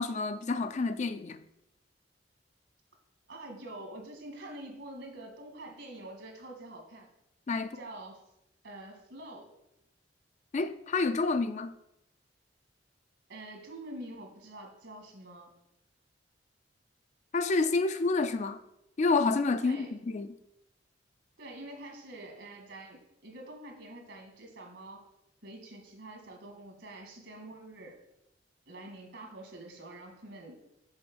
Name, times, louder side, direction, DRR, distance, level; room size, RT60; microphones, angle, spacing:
voice 1, 0.0-1.4 7.5-7.8 10.5-11.7 17.3-18.6 19.0-20.4, left 3 dB, 40° left, 0.4 m, -29 dB
voice 2, 3.3-7.1 7.7-8.2 8.6-9.5 13.3-15.6 19.6-19.9 21.4-25.0 25.4-28.0 28.7-30.6, right 1 dB, 70° right, 2.0 m, -46 dB
6.3 x 4.6 x 6.1 m
head